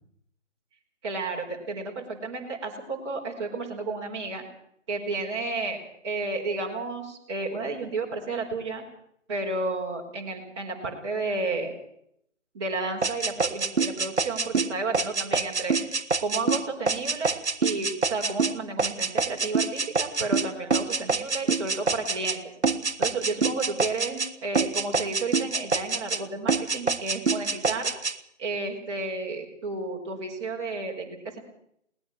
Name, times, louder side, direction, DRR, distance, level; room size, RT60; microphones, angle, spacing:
voice 1, 1.0-4.4 4.9-5.8 6.0-8.8 9.3-11.7 12.5-15.8 16.2-22.4 23.0-27.9 28.4-31.4, right 3 dB, 20° right, -2 dB, 4.3 m, -32 dB
sound 1, 13.0-22.4 22.6-24.3 24.5-26.2 26.5-28.1, right 4 dB, 60° right, 1.4 m, -26 dB
21.5 x 19.5 x 6.3 m, 0.72 s
figure-of-eight pair, 150°, 38 cm